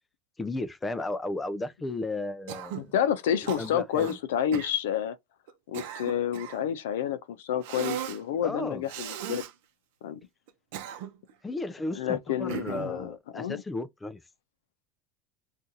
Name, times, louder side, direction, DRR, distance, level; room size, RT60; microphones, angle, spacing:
voice 1, 0.4-2.9 3.6-4.2 8.4-8.8 11.4-14.2, left 2 dB, 10° left, 0.4 m, -34 dB
Cough, 2.5-2.9 3.5-4.2 4.5-4.7 5.5-6.7 7.6-8.2 8.9-9.5 10.5-11.3 12.5-13.0, right 10 dB, 75° right, 0.6 m, -37 dB
voice 2, 2.8-5.2 5.7-9.4 10.0-10.2 11.9-13.6, left 9 dB, 90° left, 0.5 m, -29 dB
2.8 x 2.5 x 3.7 m
supercardioid pair, 140°, 0 cm